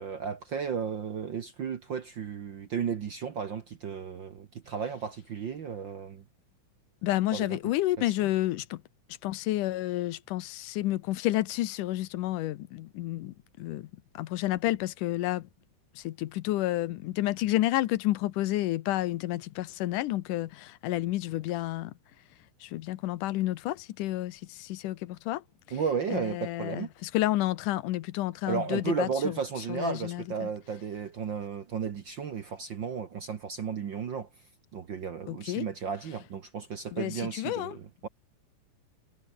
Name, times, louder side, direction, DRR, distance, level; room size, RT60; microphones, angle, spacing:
voice 1, 0.0-6.2 7.3-7.6 8.0-8.1 25.7-26.9 28.4-34.3 34.7-38.1, right 6 dB, 55° right, 1.4 m, -34 dB
voice 2, 7.0-8.8 9.2-15.5 16.0-21.9 22.6-25.4 26.1-29.4 29.7-30.5 35.3-35.7 36.9-37.8, left 15 dB, 85° left, 2.4 m, -30 dB
omnidirectional pair, 3.6 m